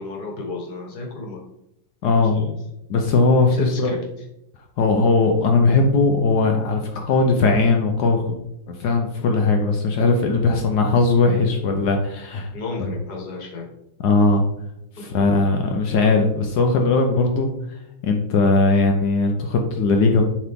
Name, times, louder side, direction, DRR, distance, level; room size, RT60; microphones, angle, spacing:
voice 1, 0.0-1.4 2.3-2.5 3.5-4.0 12.5-13.7 15.0-15.2, left 3 dB, 50° left, 0 dB, 1.7 m, -32 dB
voice 2, 2.0-2.6 2.9-4.0 4.8-8.4 8.7-12.5 12.8-12.9 14.0-14.4 15.0-17.5 18.0-20.2, left 3 dB, 70° left, 3 dB, 1.0 m, -19 dB
7.3 x 3.8 x 3.5 m, 0.84 s
omnidirectional pair, 2.4 m